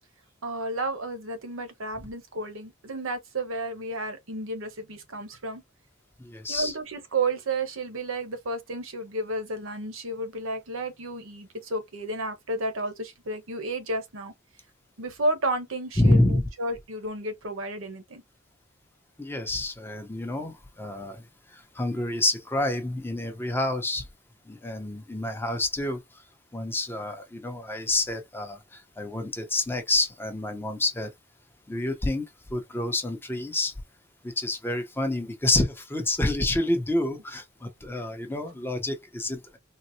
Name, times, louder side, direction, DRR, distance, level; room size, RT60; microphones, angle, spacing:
voice 1, 0.4-5.6 6.5-14.3 15.0-18.2, right 2 dB, 75° right, 1.0 m, -32 dB
voice 2, 6.2-6.7 16.0-16.4 19.2-21.2 21.5-24.1 24.5-26.0 26.5-31.1 31.7-32.2 32.5-33.7 34.2-39.6, left 2 dB, 10° left, 0.7 m, -28 dB
4.0 x 2.1 x 2.7 m
head